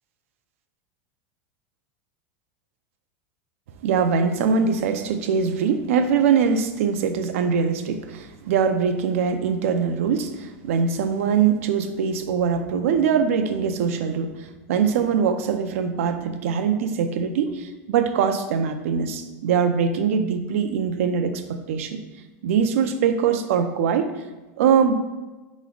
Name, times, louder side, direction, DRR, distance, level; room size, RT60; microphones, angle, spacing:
voice 1, 3.8-22.0 22.4-24.1 24.6-24.9, right 6 dB, 85° right, 8 dB, 0.5 m, -22 dB
4.2 x 3.1 x 3.8 m, 1.2 s
supercardioid pair, 155°, 7 cm